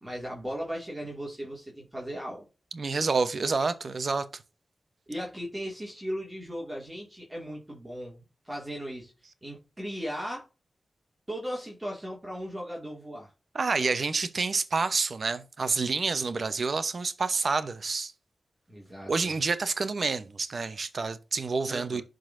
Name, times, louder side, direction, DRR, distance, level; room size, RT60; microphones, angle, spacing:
voice 1, 0.0-2.5 5.1-9.1 9.4-10.5 11.3-13.3 16.1-16.5 18.7-19.4 21.7-22.0, equal, 15° right, 2.3 m, -37 dB
voice 2, 2.7-4.3 13.5-18.1 19.1-22.0, right 4 dB, 65° right, 0.8 m, -28 dB
11.5 x 4.0 x 2.6 m
wide cardioid pair, 70°, 0 cm